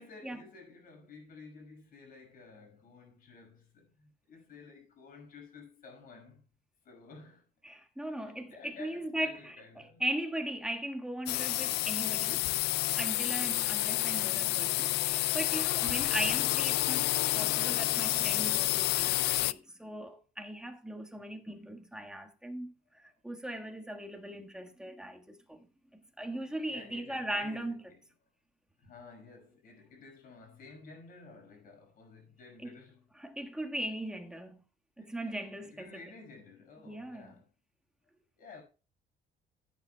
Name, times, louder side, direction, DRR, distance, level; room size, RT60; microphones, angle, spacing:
voice 1, 0.0-6.4 6.8-7.5 8.1-10.0 21.2-21.3 26.7-28.0 28.8-33.1 35.0-37.5 38.4-38.6, left 4 dB, 60° left, 5.5 m, -53 dB
voice 2, 7.6-12.5 13.0-25.6 26.2-27.8 32.6-32.7 33.2-34.6 35.0-35.9 36.8-37.3, right 1 dB, 5° right, 1.5 m, -39 dB
sound 1, 11.3-19.5, left 17 dB, 80° left, 0.4 m, -29 dB
16.0 x 9.1 x 2.2 m
cardioid pair, 110°, 17 cm